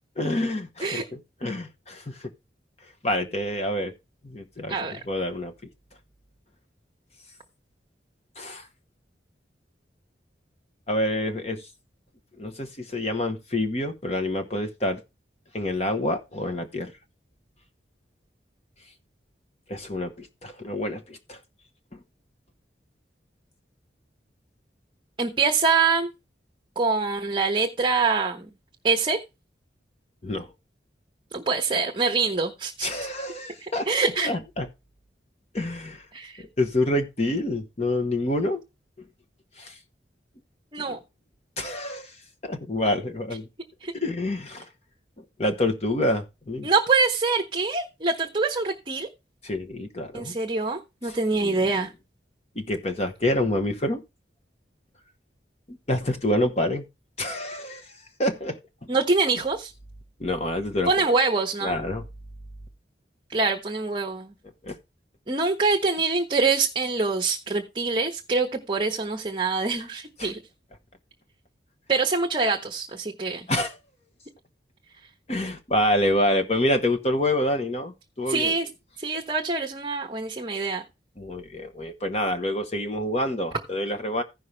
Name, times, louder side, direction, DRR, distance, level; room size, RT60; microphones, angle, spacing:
voice 1, 0.2-2.3 3.0-3.9 4.2-5.5 8.4-8.7 10.9-11.6 12.4-15.0 15.5-16.9 19.7-21.4 30.2-30.5 32.8-33.9 34.2-34.7 35.5-36.0 36.4-38.6 39.6-39.7 41.6-42.1 42.4-43.5 43.9-44.6 45.4-46.7 49.4-50.3 51.1-51.2 51.4-51.6 52.6-54.0 55.7-56.8 57.2-57.8 58.2-58.6 60.2-61.1 61.6-62.0 64.6-64.8 70.2-70.3 73.5-73.7 75.3-78.5 81.2-84.2, left 1 dB, 35° left, 1.1 m, -27 dB
voice 2, 4.7-5.0 25.2-26.1 26.8-28.5 28.8-29.2 31.3-32.9 33.6-34.3 36.1-36.4 40.7-41.0 43.8-43.9 46.6-49.1 50.1-51.9 58.9-59.7 60.9-61.7 63.3-64.3 65.3-70.4 71.9-73.5 78.3-78.7 79.0-80.8, right 4 dB, 25° right, 1.0 m, -25 dB
15.5 x 5.6 x 3.2 m
head